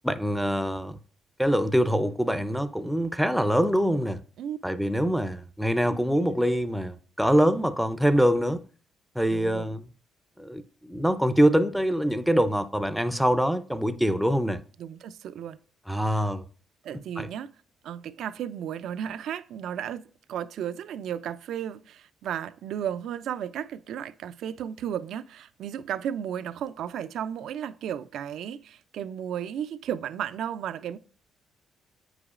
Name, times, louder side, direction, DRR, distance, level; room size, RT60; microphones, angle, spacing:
voice 1, 0.0-1.0 1.4-4.2 4.6-8.6 9.2-9.8 10.4-14.6 15.9-16.4 17.2-17.3, equal, ahead, 0.4 m, -24 dB
voice 2, 9.3-9.7 14.8-15.6 16.1-16.3 16.8-17.5 17.8-20.0 20.3-31.0, right 9 dB, 75° right, 0.3 m, -34 dB
7.9 x 4.9 x 2.4 m
cardioid pair, 90°, 0 cm